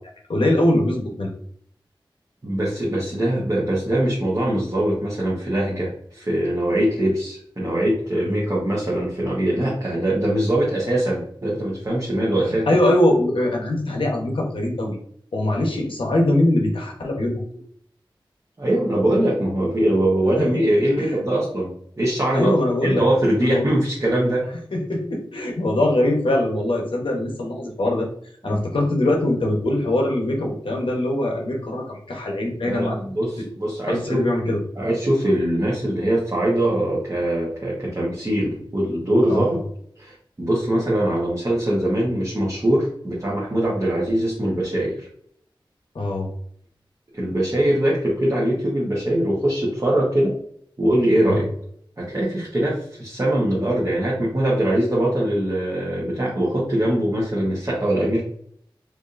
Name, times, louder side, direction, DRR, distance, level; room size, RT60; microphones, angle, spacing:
voice 1, 0.3-1.3 8.2-8.4 12.7-15.0 15.3-17.4 21.0-21.1 22.3-23.0 23.4-23.7 24.7-28.1 28.4-33.0 33.4-33.5 33.8-34.6 39.3-39.6 45.9-46.3 51.2-51.4, left 1 dB, 80° left, 1 dB, 0.9 m, -22 dB
voice 2, 2.4-12.7 18.6-22.5 22.8-24.5 28.4-28.6 32.6-34.3 34.8-39.6 40.0-45.1 47.1-50.3 50.8-51.5 52.0-58.2, right 1 dB, 35° right, -6 dB, 1.1 m, -22 dB
4.7 x 2.7 x 2.5 m, 0.65 s
wide cardioid pair, 75°, 9 cm